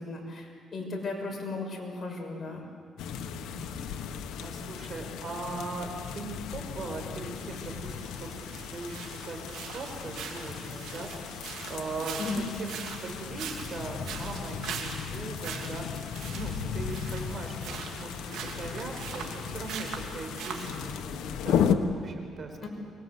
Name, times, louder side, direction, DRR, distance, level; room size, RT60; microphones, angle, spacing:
voice 1, 0.0-2.6 12.2-12.5 22.6-22.7, left 3 dB, 35° left, 1 dB, 6.4 m, -35 dB
sound 1, 3.0-21.7, left 8 dB, 85° left, 1.3 m, -35 dB
voice 2, 3.3-12.7 13.0-22.7, right 3 dB, 45° right, 3 dB, 4.8 m, -40 dB
sound 2, 7.3-21.0, right 7 dB, 80° right, 3.1 m, -42 dB
24.5 x 22.0 x 8.1 m, 2.1 s
cardioid pair, 90°, 0 cm